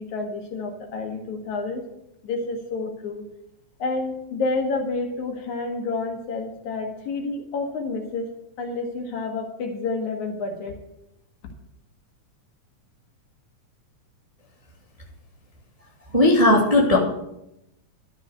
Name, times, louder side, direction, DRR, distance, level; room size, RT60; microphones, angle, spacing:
voice 1, 0.0-1.8 2.2-3.3 3.8-8.3 8.6-10.8, left 3 dB, 70° left, 3 dB, 3.0 m, -29 dB
voice 2, 16.1-17.0, left 1 dB, 15° right, -2 dB, 1.6 m, -16 dB
12.5 x 6.6 x 8.1 m, 0.85 s
omnidirectional pair, 3.5 m